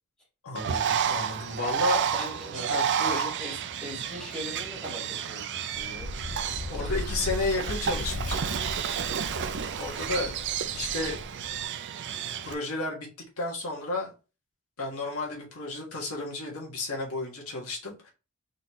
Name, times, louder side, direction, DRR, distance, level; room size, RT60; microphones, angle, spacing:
voice 1, 0.4-2.0 2.7-3.2 6.7-8.5 9.8-10.4 10.7-11.2 12.4-13.1 13.4-14.1 14.8-18.1, left 2 dB, 70° left, -2 dB, 1.6 m, -32 dB
Bird, 0.5-12.5, right 8 dB, 55° right, 0.4 m, -31 dB
voice 2, 2.1-2.8 3.1-6.2 9.6-9.8, equal, 5° left, -4 dB, 2.0 m, -41 dB
Wind, 5.7-11.7, left 2 dB, 50° left, 0.5 m, -37 dB
4.1 x 3.8 x 3.0 m, 0.31 s
head